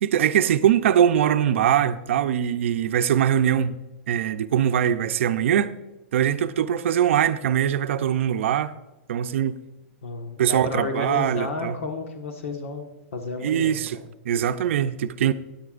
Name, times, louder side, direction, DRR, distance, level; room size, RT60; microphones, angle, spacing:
voice 1, 0.0-3.8 4.1-5.7 6.1-8.7 9.1-9.6 10.4-11.8 13.4-14.0 14.2-15.3, right 9 dB, 70° right, 0.6 m, -22 dB
voice 2, 10.0-14.0, left 3 dB, 80° left, 1.5 m, -32 dB
16.0 x 10.0 x 2.5 m
supercardioid pair, 170°, 7 cm